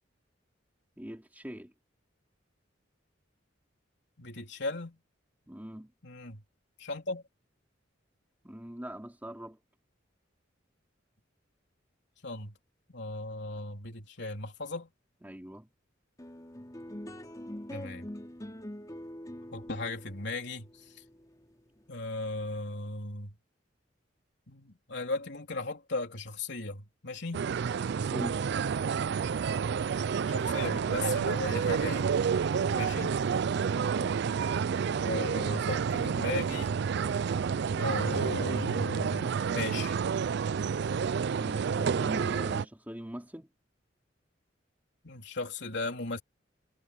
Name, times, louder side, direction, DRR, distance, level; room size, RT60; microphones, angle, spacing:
voice 1, 1.0-1.7 5.5-5.9 8.4-9.6 15.2-15.7 28.1-28.4 41.4-43.5, equal, 10° right, 2.9 m, -42 dB
voice 2, 4.2-5.0 6.0-6.4 6.8-7.2 12.2-12.6 12.9-14.9 17.7-18.1 19.5-20.9 21.9-23.4 24.5-27.5 30.3-32.1 32.7-33.2 34.9-36.8 37.8-40.0 45.0-46.2, left 2 dB, 65° left, 3.7 m, -37 dB
sound 1, 16.2-22.8, left 1 dB, 20° left, 3.2 m, -44 dB
sound 2, 27.3-42.6, right 6 dB, 60° right, 0.4 m, -29 dB
head